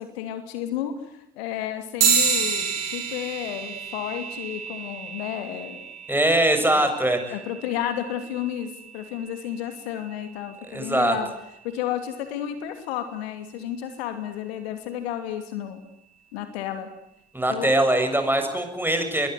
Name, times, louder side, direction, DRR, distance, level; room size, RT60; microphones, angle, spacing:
voice 1, 0.0-5.9 6.7-6.9 7.3-11.3 11.6-15.8 16.3-16.9 17.5-17.7, left 10 dB, 70° left, 8 dB, 2.9 m, -32 dB
sound 1, 2.0-11.8, right 6 dB, 55° right, 7.7 m, -30 dB
voice 2, 6.1-7.2 10.7-11.1 17.3-19.3, right 1 dB, 5° right, 6 dB, 7.4 m, -22 dB
27.5 x 22.0 x 9.6 m, 0.80 s
figure-of-eight pair, 55°, 32 cm